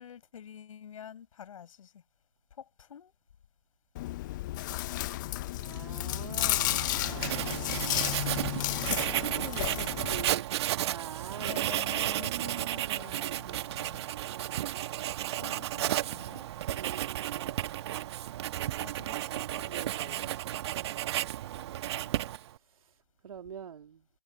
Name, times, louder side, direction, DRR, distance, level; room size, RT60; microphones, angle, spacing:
voice 1, 0.0-2.0 2.5-3.1 8.4-9.1 11.3-14.0 15.4-16.4 18.8-19.4 20.0-20.4, left 8 dB, 55° left, 6.7 m, -48 dB
Chewing mastication, 4.0-10.3, left 16 dB, 30° left, 0.7 m, -32 dB
voice 2, 5.5-8.7 9.1-11.7 12.0-13.8 14.2-15.1 16.7-18.2 19.7-21.3 22.1-24.1, right 8 dB, 60° right, 2.9 m, -46 dB
Writing, 6.4-22.6, right 13 dB, 40° right, 1.8 m, -33 dB
hypercardioid pair, 140°, 20 cm